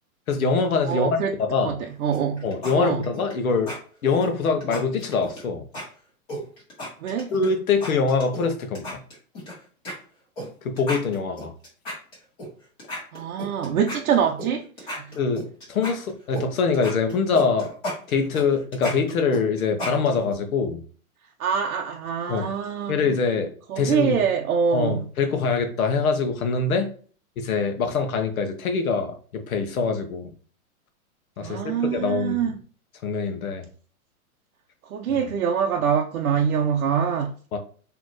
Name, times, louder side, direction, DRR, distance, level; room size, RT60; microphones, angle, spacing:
voice 1, 0.3-1.8 2.4-3.7 4.0-5.7 7.3-9.0 10.6-11.5 15.2-17.7 18.1-20.8 22.3-22.5 22.9-24.2 24.7-26.9 27.4-30.3 31.4-32.5 33.0-33.7 37.5-37.6, left 4 dB, 75° left, 1.0 m, -24 dB
voice 2, 0.9-1.3 1.6-2.5 2.7-3.1 7.0-7.3 13.1-15.1 21.4-23.0 23.7-25.0 31.4-32.5 34.9-37.4, right 7 dB, 70° right, 0.6 m, -24 dB
sound 1, 2.1-2.7 3.0-3.3 3.7-3.8 4.2-5.4 5.7-5.8 6.3-7.5 7.8-8.4 8.7-9.5 9.8-9.9 10.4-10.5 10.8-12.5 12.8-14.5 14.8-16.4 16.7-20.3, equal, 25° left, 1.8 m, -34 dB
4.1 x 2.9 x 3.1 m
hypercardioid pair, 170°, 43 cm